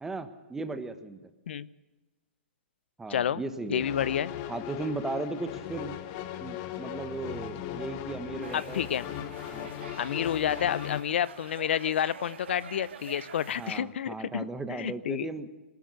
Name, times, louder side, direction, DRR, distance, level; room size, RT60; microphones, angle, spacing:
voice 1, 0.0-1.3 3.0-3.8 4.5-6.0 6.4-8.8 9.5-9.7 13.6-15.5, right 3 dB, 5° right, 10 dB, 1.2 m, -36 dB
voice 2, 3.1-3.4 3.7-4.3 8.5-9.1 10.0-15.3, left 9 dB, 65° left, 19 dB, 0.7 m, -30 dB
sound 1, 3.8-11.0, left 11 dB, 35° left, 1.3 m, -38 dB
sound 2, 8.4-13.8, right 7 dB, 70° right, 2.6 m, -47 dB
21.5 x 13.0 x 9.6 m, 1.1 s
hypercardioid pair, 155°, 6 cm